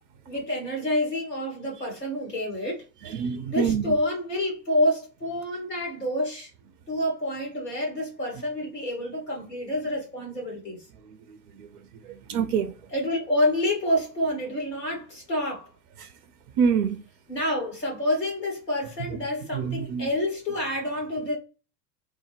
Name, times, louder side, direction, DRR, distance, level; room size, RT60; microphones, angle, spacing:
voice 1, 0.2-2.8 3.5-6.5 6.9-10.8 12.9-15.7 17.3-21.4, left 1 dB, 85° left, 1.5 m, -28 dB
voice 2, 3.0-3.9 11.0-11.7 12.0-12.7 16.0-16.1 16.6-17.0 19.1-19.2 19.5-20.1, right 7 dB, 35° right, 0.4 m, -27 dB
3.4 x 2.0 x 3.2 m
figure-of-eight pair, 80°, 48 cm